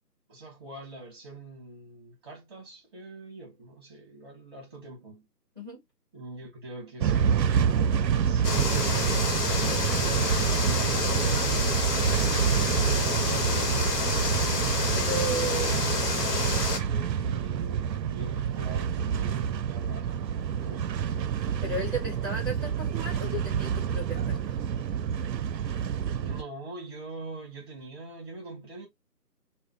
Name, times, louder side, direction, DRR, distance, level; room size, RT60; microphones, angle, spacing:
voice 1, 0.3-5.3 6.1-11.6 12.5-13.9 14.9-20.9 26.2-28.9, right 2 dB, 15° right, 0.9 m, -44 dB
sound 1, 7.0-26.4, right 8 dB, 90° right, 0.6 m, -28 dB
sound 2, 8.4-16.8, left 3 dB, 65° left, 1.5 m, -28 dB
voice 2, 9.6-10.1 14.9-15.7 21.3-24.6, right 1 dB, 15° left, 1.3 m, -35 dB
3.6 x 2.3 x 3.4 m
figure-of-eight pair, 160°, 49 cm